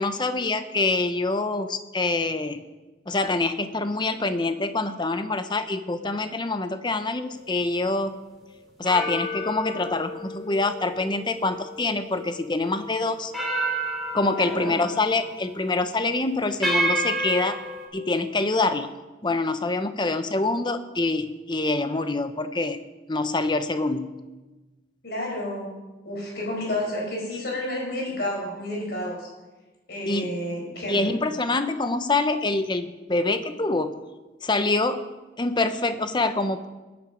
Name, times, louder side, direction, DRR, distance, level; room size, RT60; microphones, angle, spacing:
voice 1, 0.0-2.6 3.1-8.1 8.8-13.3 14.1-17.6 17.9-18.9 19.2-22.8 23.1-24.1 30.1-30.3 30.9-33.9 34.4-35.0 35.4-36.7, left 3 dB, 25° left, 10 dB, 0.7 m, -25 dB
sound 1, 7.3-7.5 8.9-12.3 12.7-12.8 13.3-15.2 15.5-15.8 16.6-17.9, right 1 dB, ahead, 3.3 m, -30 dB
voice 2, 14.4-14.9 25.0-25.7 26.0-29.3 29.9-31.1, left 1 dB, 60° left, -1 dB, 4.8 m, -30 dB
16.5 x 9.2 x 5.1 m, 1.2 s
head